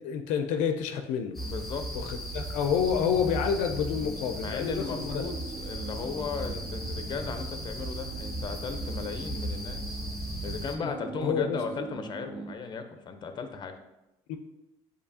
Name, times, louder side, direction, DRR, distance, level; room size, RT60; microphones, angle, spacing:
voice 1, 0.0-1.4 2.0-5.2 10.8-10.9 11.2-11.6 14.3-14.4, left 7 dB, 85° left, 6 dB, 0.4 m, -28 dB
sound 1, 1.3-10.7, right 1 dB, ahead, 0.9 m, -36 dB
voice 2, 1.4-1.9 4.0-10.0 10.4-13.8, left 5 dB, 35° left, 7 dB, 0.6 m, -36 dB
sound 2, 3.9-12.6, right 5 dB, 40° right, 0.4 m, -43 dB
6.6 x 2.7 x 2.7 m, 0.91 s
cardioid pair, 95°, 12 cm